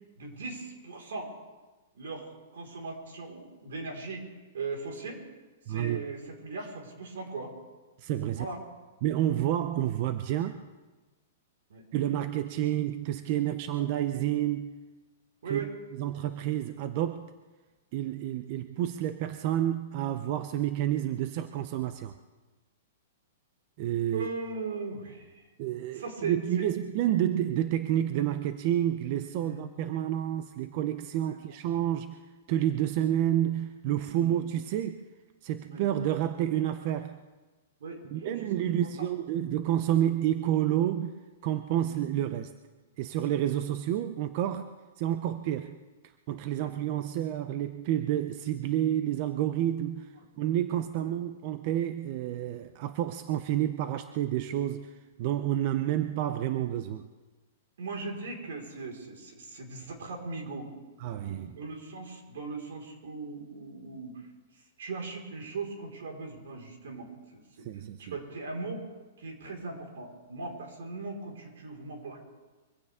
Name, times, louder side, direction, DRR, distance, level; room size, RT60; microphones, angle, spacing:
voice 1, 0.2-1.3 1.9-4.2 4.5-5.2 5.7-7.5 8.2-8.6 11.7-11.8 13.8-13.9 15.4-15.7 24.1-25.4 25.9-26.6 29.4-29.7 31.2-31.4 34.2-34.3 35.7-35.8 37.8-39.1 41.8-41.9 46.6-46.7 51.0-51.1 57.8-60.7 61.4-64.1 64.8-67.4 68.0-68.8 69.2-72.2, right 3 dB, 80° right, 1 dB, 4.8 m, -39 dB
voice 2, 5.7-6.0 8.0-8.5 9.0-10.6 11.9-14.7 15.5-15.7 16.0-17.3 17.9-22.1 23.8-24.3 25.6-32.2 32.5-35.0 35.4-37.2 38.1-41.1 41.4-42.5 43.0-45.8 46.3-50.1 50.4-57.1 61.0-61.6 67.6-68.1, right 11 dB, 40° right, 10 dB, 0.6 m, -29 dB
24.0 x 16.0 x 3.7 m, 1.2 s
hypercardioid pair, 165°, 0 cm